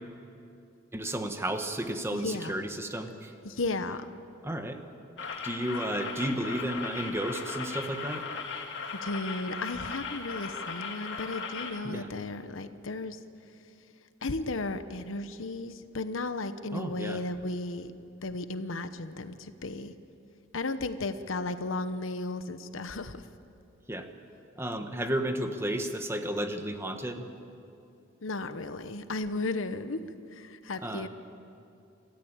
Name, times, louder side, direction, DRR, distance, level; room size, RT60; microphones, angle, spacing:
voice 1, 0.9-3.3 4.4-4.8 5.4-8.3 11.8-12.1 16.7-17.2 23.9-24.1 24.5-27.2 30.8-31.1, right 1 dB, 15° right, 6 dB, 1.3 m, -32 dB
voice 2, 2.1-2.6 3.4-4.1 9.0-13.2 14.2-17.9 18.2-19.9 20.5-23.3 28.2-30.0 30.3-31.1, left 2 dB, 85° left, 11 dB, 1.0 m, -34 dB
sound 1, 5.2-11.8, left 5 dB, 60° left, 2.1 m, -37 dB
28.0 x 14.0 x 8.9 m, 2.6 s
head